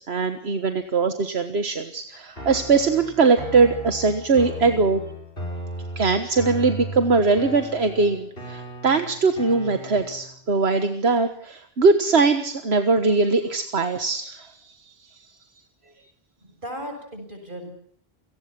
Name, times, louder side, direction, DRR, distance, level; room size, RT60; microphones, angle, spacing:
voice 1, 0.0-5.0 6.0-14.6, right 4 dB, 80° right, 8 dB, 1.7 m, -21 dB
sound 1, 2.4-10.4, equal, 65° left, 6.8 m, -36 dB
voice 2, 16.4-17.7, equal, 55° right, 5 dB, 7.1 m, -36 dB
29.0 x 18.5 x 6.0 m, 0.62 s
omnidirectional pair, 1.1 m